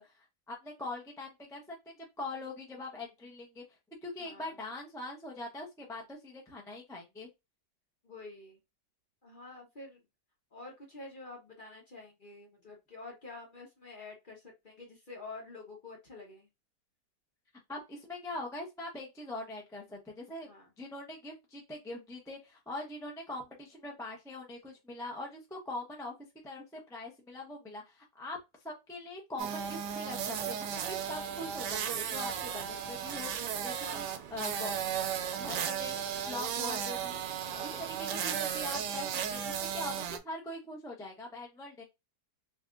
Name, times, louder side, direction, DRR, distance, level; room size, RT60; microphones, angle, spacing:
voice 1, 0.0-3.6 4.0-7.3 17.7-20.5 20.8-26.1 26.4-28.4 28.6-34.8 35.4-36.0 36.3-37.2 37.6-41.8, left 2 dB, 5° left, -2 dB, 0.5 m, -42 dB
voice 2, 4.2-4.6 8.0-8.6 9.2-10.0 10.5-16.5 20.4-20.7 33.8-34.2 37.4-37.9, left 3 dB, 35° left, -1 dB, 1.0 m, -48 dB
sound 1, 29.4-40.2, right 8 dB, 80° right, 1.2 m, -35 dB
4.1 x 2.9 x 2.4 m, 0.22 s
omnidirectional pair, 1.8 m